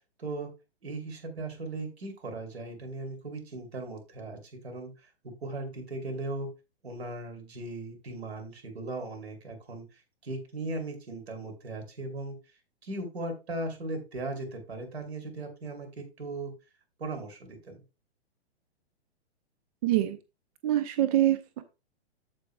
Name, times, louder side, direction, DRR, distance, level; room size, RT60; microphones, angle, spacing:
voice 1, 0.8-6.5 6.8-12.4 12.8-16.5 17.0-17.8, right 2 dB, 70° right, 4 dB, 2.8 m, -38 dB
voice 2, 19.8-20.2 20.6-21.6, right 13 dB, 35° right, 13 dB, 0.6 m, -25 dB
14.0 x 4.8 x 2.2 m, 0.28 s
figure-of-eight pair, 115°, 33 cm